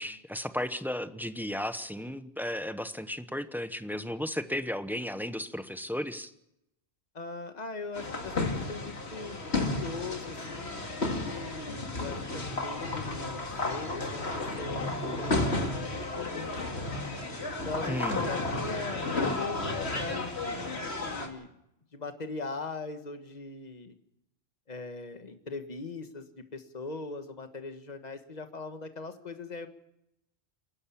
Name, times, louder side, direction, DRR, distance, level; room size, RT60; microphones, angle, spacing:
voice 1, 0.0-6.3 17.9-18.2, left 1 dB, ahead, 11 dB, 0.9 m, -34 dB
voice 2, 7.1-16.9 17.6-21.5 21.9-23.9 24.7-29.7, left 4 dB, 40° left, 8 dB, 1.6 m, -40 dB
sound 1, 8.0-21.3, left 2 dB, 85° left, 2.6 m, -33 dB
28.0 x 12.0 x 8.6 m, 0.84 s
omnidirectional pair, 1.1 m